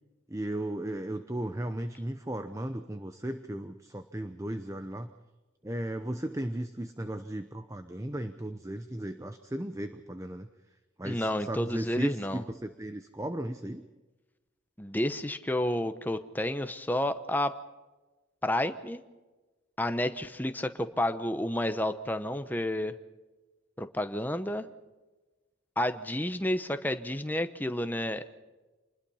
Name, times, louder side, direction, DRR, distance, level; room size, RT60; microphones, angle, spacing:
voice 1, 0.3-5.1 5.6-10.5 11.0-13.8, right 1 dB, 15° right, 9 dB, 0.8 m, -36 dB
voice 2, 11.0-12.4 14.8-17.5 18.4-19.0 19.8-23.0 23.8-24.7 25.8-28.3, left 1 dB, 10° left, 9 dB, 1.0 m, -30 dB
27.5 x 20.5 x 5.6 m, 1.2 s
head